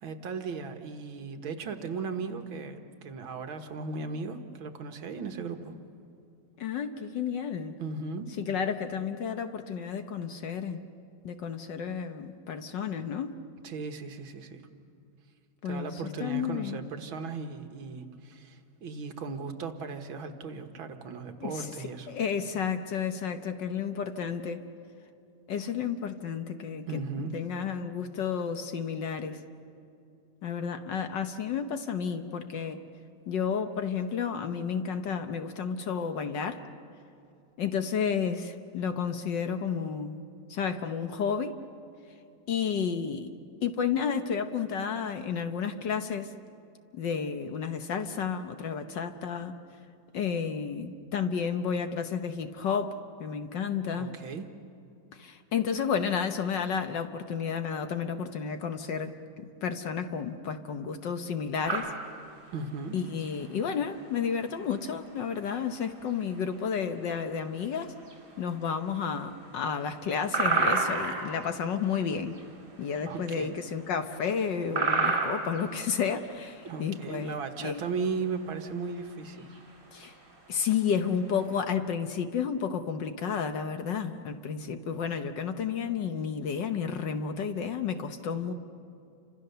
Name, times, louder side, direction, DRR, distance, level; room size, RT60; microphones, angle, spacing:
voice 1, 0.0-5.7 7.8-8.3 13.6-14.6 15.7-22.1 26.9-27.3 53.9-54.5 62.5-63.0 73.0-73.5 76.6-79.5, right 4 dB, 65° right, 6 dB, 2.1 m, -36 dB
voice 2, 6.6-7.7 8.4-10.8 11.2-13.4 15.6-15.9 16.2-16.8 21.4-24.7 25.5-27.0 27.3-29.4 30.4-32.8 33.3-36.6 37.6-40.2 40.5-41.6 42.5-43.3 43.6-46.3 46.9-49.5 50.1-54.1 55.1-61.9 62.9-67.9 68.4-72.4 72.8-77.8 79.9-80.1 80.5-88.5, left 6 dB, 60° left, 8 dB, 1.5 m, -31 dB
sound 1, 61.7-81.6, right 4 dB, 35° right, 5.4 m, -33 dB
30.0 x 26.0 x 6.8 m, 2.6 s
omnidirectional pair, 2.4 m